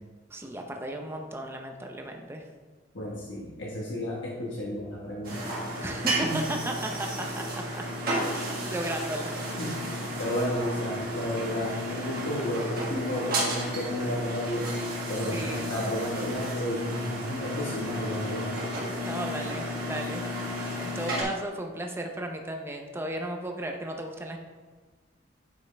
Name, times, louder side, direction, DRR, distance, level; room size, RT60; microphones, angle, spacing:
voice 1, 0.3-2.4 5.8-7.4 7.7-7.8 8.2-9.3 15.3-15.7 18.9-20.5 20.8-24.4, right 1 dB, 10° right, 3 dB, 0.6 m, -35 dB
voice 2, 2.9-5.4 6.2-6.4 9.6-9.8 10.2-14.7 15.1-18.5, equal, 65° left, -5 dB, 1.4 m, -32 dB
sound 1, 5.2-21.2, equal, 50° right, 1.7 m, -32 dB
9.3 x 5.5 x 3.3 m, 1.4 s
head